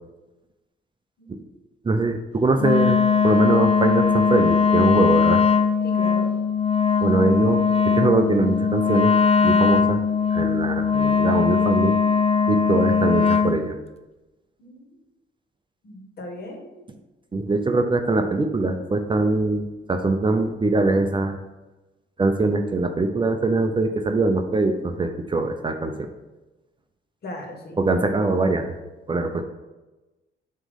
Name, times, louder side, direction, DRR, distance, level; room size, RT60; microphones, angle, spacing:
voice 1, 1.8-3.0 3.2-5.4 7.0-9.1 9.4-10.0 10.3-12.0 12.5-13.8 17.3-21.4 22.2-26.1 27.8-28.7 29.1-29.4, right 3 dB, 25° right, 6 dB, 0.6 m, -22 dB
Wind instrument woodwind instrument, 2.6-13.6, left 5 dB, 30° left, 0.5 m, -20 dB
voice 2, 5.8-6.3 14.6-15.0 15.8-16.7 27.2-27.8, left 1 dB, 55° left, 1 dB, 1.7 m, -37 dB
7.4 x 3.1 x 5.4 m, 1.1 s
cardioid pair, 90°, 20 cm